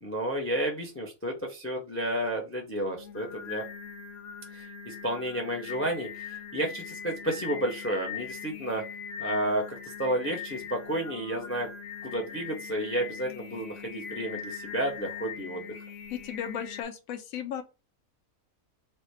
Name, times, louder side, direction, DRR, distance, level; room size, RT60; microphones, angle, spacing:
voice 1, 0.0-3.6 4.5-8.8 9.2-11.7 12.0-15.7, right 1 dB, 20° left, 0.3 m, -31 dB
Singing, 2.8-16.8, left 7 dB, 65° left, 0.7 m, -41 dB
voice 2, 16.1-17.6, left 9 dB, 85° left, 1.1 m, -35 dB
3.2 x 2.1 x 4.1 m
omnidirectional pair, 1.4 m